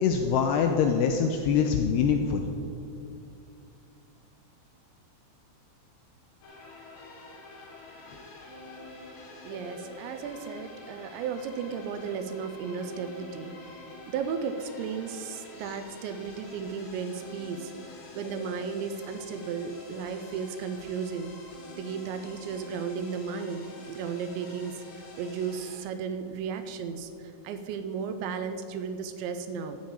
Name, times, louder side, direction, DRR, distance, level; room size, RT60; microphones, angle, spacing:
voice 1, 0.0-2.4, left 6 dB, 85° left, 4 dB, 2.4 m, -24 dB
sound 1, 6.4-25.8, left 2 dB, 70° left, 4.1 m, -47 dB
voice 2, 9.4-17.7 18.1-21.3 21.8-29.8, right 6 dB, 80° right, 9 dB, 2.8 m, -35 dB
12.5 x 5.7 x 8.7 m, 2.5 s
omnidirectional pair, 5.3 m